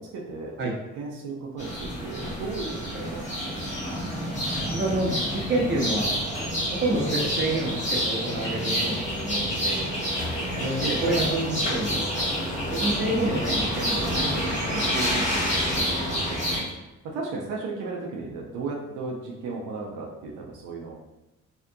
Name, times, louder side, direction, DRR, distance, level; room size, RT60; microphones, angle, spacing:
voice 1, 0.0-4.0 10.8-11.3 16.8-20.9, right 3 dB, 85° right, -2 dB, 0.5 m, -35 dB
sound 1, 1.6-16.6, equal, 25° left, 1.3 m, -28 dB
voice 2, 4.7-6.2 6.7-9.9 10.6-12.3 12.7-15.9, right 2 dB, 35° right, -3 dB, 0.8 m, -29 dB
2.7 x 2.4 x 2.2 m, 0.95 s
cardioid pair, 90°, 30 cm